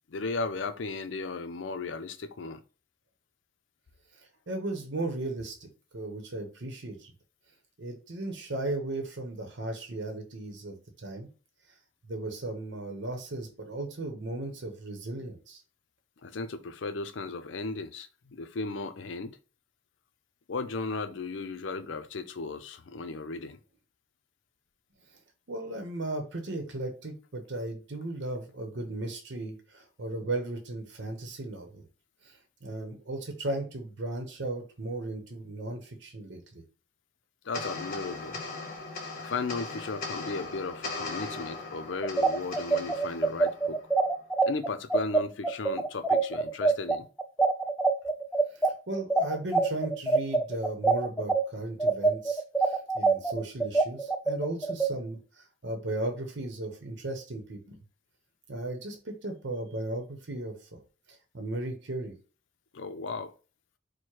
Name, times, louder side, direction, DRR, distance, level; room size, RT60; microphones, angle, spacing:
voice 1, 0.1-2.6 16.2-19.4 20.5-23.6 37.4-38.4 39.2-43.8 44.5-47.1 62.7-63.3, left 3 dB, 80° left, 0.5 m, -35 dB
voice 2, 4.2-7.1 7.8-11.3 12.0-15.6 25.5-31.9 32.2-36.6 48.5-57.8 58.5-60.8 61.1-62.1, right 2 dB, 70° right, 0.9 m, -36 dB
sound 1, 37.5-44.2, left 3 dB, 50° left, 1.3 m, -39 dB
sound 2, 42.0-51.4 51.8-54.9, right 3 dB, 5° left, 0.4 m, -25 dB
4.6 x 2.2 x 4.4 m
head